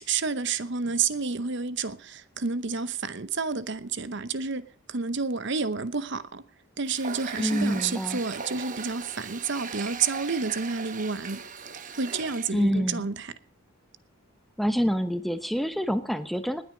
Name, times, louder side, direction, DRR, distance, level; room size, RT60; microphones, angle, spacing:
voice 1, 0.0-6.4 6.8-11.4 11.7-13.3, right 5 dB, 55° right, 0.8 m, -30 dB
Water tap faucet, 6.8-12.6, right 5 dB, 35° right, 1.2 m, -39 dB
voice 2, 7.4-8.2 12.5-13.1 14.6-16.6, equal, ahead, 0.9 m, -26 dB
20.0 x 9.1 x 5.0 m
head